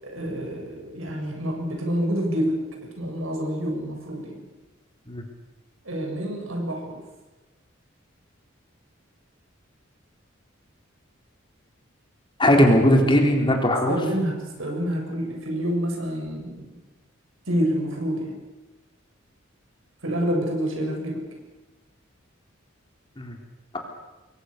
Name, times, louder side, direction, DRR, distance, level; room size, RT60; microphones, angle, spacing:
voice 1, 0.0-4.4 5.8-7.0 12.5-12.6 13.0-13.2 13.9-16.7 17.5-18.4 20.0-21.3, equal, 85° right, 2 dB, 7.3 m, -28 dB
voice 2, 12.4-14.0 23.2-23.4, left 1 dB, 25° left, 2 dB, 3.8 m, -18 dB
28.5 x 22.0 x 6.7 m, 1.1 s
head